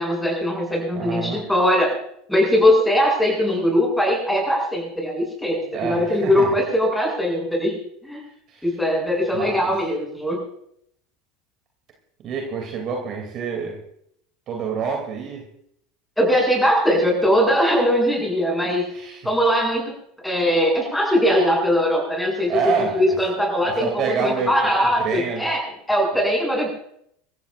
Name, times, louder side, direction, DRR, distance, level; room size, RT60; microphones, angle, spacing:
voice 1, 0.0-1.9 2.3-8.2 8.6-10.4 16.2-18.9 19.2-19.9 20.2-25.6 25.9-26.7, equal, 5° left, 0 dB, 7.8 m, -20 dB
voice 2, 0.9-1.4 5.7-6.5 8.5-8.6 9.3-9.7 12.2-13.8 14.5-15.4 18.9-19.2 22.5-23.0 23.6-25.5, right 6 dB, 45° right, 1 dB, 3.1 m, -27 dB
26.0 x 14.5 x 2.7 m, 0.71 s
figure-of-eight pair, 75°, 0 cm